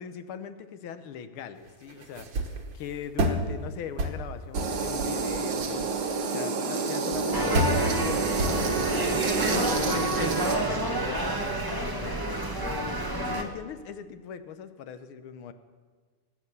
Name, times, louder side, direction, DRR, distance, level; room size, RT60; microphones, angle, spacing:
voice 1, 0.0-5.9 6.3-12.2 12.6-15.5, left 8 dB, 85° left, 11 dB, 1.7 m, -40 dB
sound 1, 1.7-3.5 4.0-4.2 4.5-6.1 6.8-6.9 7.1-7.2 7.5-7.8 8.4-8.9, equal, 65° right, 2.0 m, -29 dB
sound 2, 4.5-10.6, right 4 dB, 80° right, 2.2 m, -29 dB
sound 3, 7.3-13.4, right 2 dB, 20° right, 0.6 m, -29 dB
18.0 x 8.6 x 6.9 m, 1.5 s
omnidirectional pair, 2.3 m